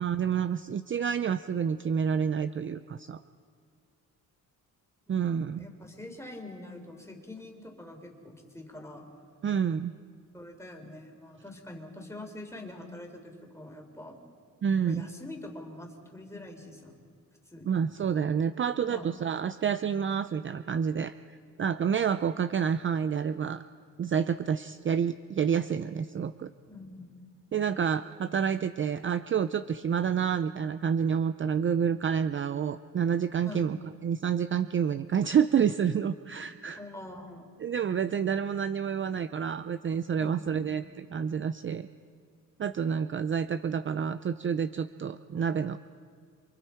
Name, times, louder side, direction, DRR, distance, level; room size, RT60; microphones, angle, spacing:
voice 1, 0.0-3.2 5.1-5.6 9.4-9.9 14.6-15.1 17.7-23.6 24.0-26.5 27.5-33.8 34.0-36.8 37.6-41.9 42.6-45.8, right 7 dB, 35° right, 12 dB, 0.5 m, -28 dB
voice 2, 5.1-9.1 10.3-14.2 14.9-16.9 17.5-17.8 18.9-19.1 26.7-27.1 33.5-33.6 36.8-37.5 40.2-40.6, left 1 dB, 10° left, 2 dB, 3.8 m, -45 dB
28.0 x 24.5 x 4.6 m, 2.1 s
cardioid pair, 105°, 33 cm